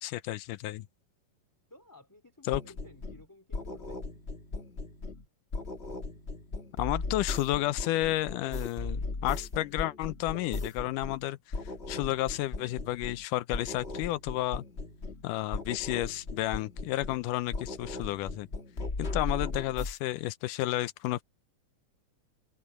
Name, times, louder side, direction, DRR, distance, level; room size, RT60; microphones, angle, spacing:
voice 1, 0.0-0.9 2.5-2.6 6.8-11.4 11.9-14.6 15.2-18.5 19.0-21.2, left 16 dB, 85° left, 2.3 m, -31 dB
voice 2, 1.7-4.0, left 2 dB, 5° left, 2.6 m, -55 dB
sound 1, 2.5-3.3 3.5-5.3 5.5-11.2 11.5-13.2 13.5-15.3 15.5-17.2 17.5-20.0, left 3 dB, 30° left, 1.3 m, -37 dB
open air
omnidirectional pair, 3.7 m